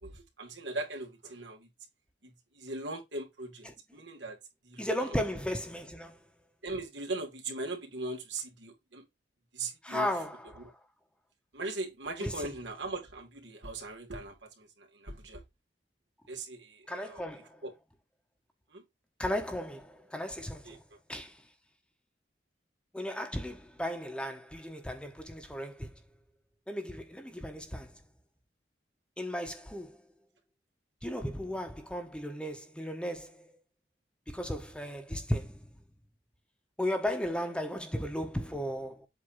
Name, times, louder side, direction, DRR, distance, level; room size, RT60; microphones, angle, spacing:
voice 1, 0.0-1.7 2.2-4.4 4.6-4.9 6.6-9.0 9.5-10.1 10.6-10.7 11.5-15.4 16.3-17.7 18.7-18.8 20.6-20.8, right 2 dB, 85° right, 2.6 m, -40 dB
voice 2, 4.8-6.2 9.8-10.7 12.2-12.5 16.9-17.6 19.2-20.8 21.1-21.4 22.9-25.9 26.7-27.9 29.2-30.0 31.0-33.5 34.3-35.6 36.8-39.1, equal, 5° left, 1.1 m, -35 dB
7.9 x 2.9 x 5.6 m
head